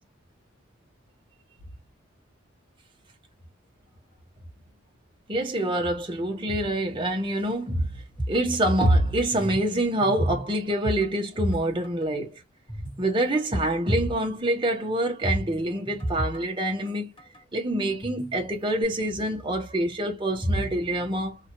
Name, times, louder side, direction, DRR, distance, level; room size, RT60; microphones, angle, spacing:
voice 1, 5.3-7.9 8.3-12.4 13.0-17.1 17.5-21.4, right 1 dB, 25° right, 0.9 m, -25 dB
sound 1, 8.2-9.7 10.0-11.6 11.8-12.1 12.7-13.8 14.1-14.2 15.4-17.4 18.0-18.8, right 1 dB, 25° left, 1.3 m, -35 dB
2.8 x 2.4 x 2.9 m
head